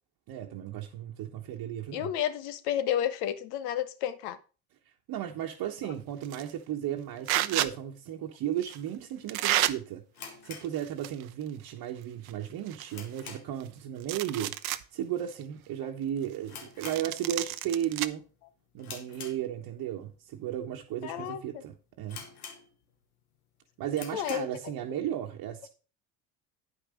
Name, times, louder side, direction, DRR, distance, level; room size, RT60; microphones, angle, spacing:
voice 1, 0.3-2.1 5.1-10.0 10.4-14.6 14.9-18.2 18.7-22.2 23.8-25.7, right 11 dB, 55° right, 1.2 m, -35 dB
voice 2, 1.9-4.4 21.0-21.6 24.1-24.5, left 10 dB, 65° left, 1.1 m, -31 dB
sound 1, 6.2-6.5 7.3-7.7 8.6-8.8 9.3-9.7 10.6-11.3 11.6-11.7 12.3-12.4 12.7-13.7 14.0-14.8 15.3-15.4 16.8-18.1, right 15 dB, 75° right, 0.7 m, -30 dB
sound 2, 10.1-11.5 11.8-11.9 12.4-13.7 14.0-14.3 14.6-14.7 15.4-15.7 15.9-16.0 16.4-17.6 18.0-18.3 18.8-19.9 20.5-20.6 21.2-21.3 21.5-21.6 22.1-23.0 23.4-23.5 23.9-24.6, left 6 dB, 85° left, 1.7 m, -46 dB
9.4 x 5.6 x 5.0 m
hypercardioid pair, 65°, 43 cm